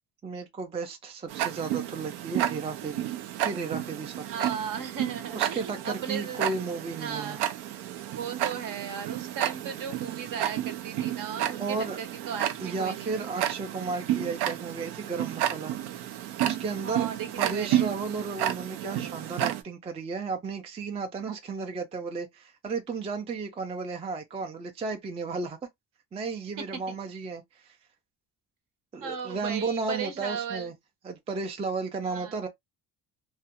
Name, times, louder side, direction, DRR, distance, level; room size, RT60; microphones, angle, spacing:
voice 1, 0.2-4.3 5.3-7.4 11.6-12.0 12.6-15.7 16.0-16.2 16.4-17.1 17.4-25.6 26.1-27.8 28.9-30.7 31.0-32.5, right 4 dB, 15° right, 0.3 m, -34 dB
Tick-tock, 1.3-19.6, right 12 dB, 85° right, 0.5 m, -31 dB
voice 2, 4.2-6.5 7.0-7.5 8.1-13.2 16.8-17.9 26.6-26.9 29.0-30.7 32.1-32.4, right 7 dB, 55° right, 0.8 m, -36 dB
2.4 x 2.2 x 2.7 m
cardioid pair, 115°, 39 cm